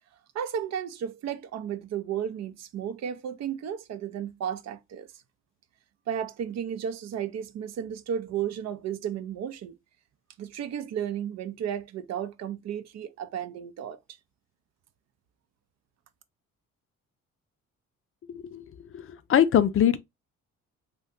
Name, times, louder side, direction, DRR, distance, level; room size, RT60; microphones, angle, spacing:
voice 1, 0.3-5.1 6.1-9.8 10.4-14.0, right 9 dB, 60° right, 0.5 m, -33 dB
voice 2, 18.3-18.6 18.9-20.0, left 10 dB, 45° left, 0.4 m, -23 dB
2.7 x 2.2 x 3.5 m
cardioid pair, 90°, 30 cm